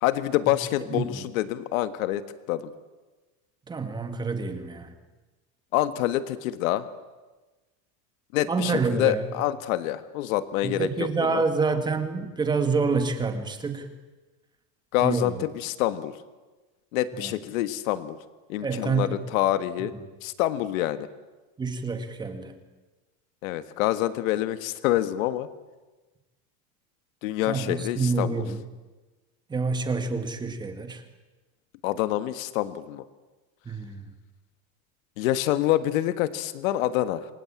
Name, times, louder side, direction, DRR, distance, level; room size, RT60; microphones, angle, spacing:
voice 1, 0.0-2.2 2.5-2.7 5.7-6.9 8.3-10.9 11.2-11.4 14.9-16.1 16.9-18.2 18.5-19.9 20.2-21.1 23.4-25.5 27.2-28.4 31.8-33.0 35.2-37.3, left 14 dB, 85° left, 12 dB, 1.6 m, -26 dB
voice 2, 0.9-1.3 3.7-4.9 8.5-9.3 10.6-13.9 15.0-15.4 17.1-17.3 18.6-19.5 21.6-22.5 27.4-28.6 29.5-31.0 33.7-34.0, right 4 dB, 10° right, 7 dB, 1.9 m, -27 dB
28.5 x 23.5 x 8.8 m, 1.2 s
cardioid pair, 180°, 40 cm